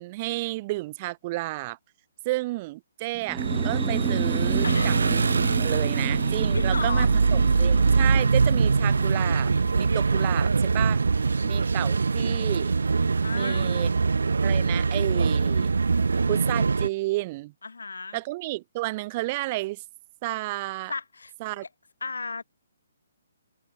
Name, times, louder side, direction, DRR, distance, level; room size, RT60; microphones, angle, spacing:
voice 1, 0.0-1.8 2.2-5.2 5.6-11.0 11.4-12.7 13.3-13.9 14.4-15.7 16.3-17.5 18.1-19.8 20.2-20.9 21.4-21.6, right 20 dB, 35° right, 1.1 m, -31 dB
sound 1, 3.2-10.7, right 7 dB, 10° right, 0.8 m, -36 dB
sound 2, 3.4-16.9, right 4 dB, 75° right, 0.4 m, -23 dB
voice 2, 4.6-5.0 6.5-7.1 11.2-11.6 13.2-13.9 17.6-18.2 20.9-21.3 21.6-21.7 22.0-22.4, left 4 dB, 75° left, 4.3 m, -35 dB
figure-of-eight pair, 135°, 0 cm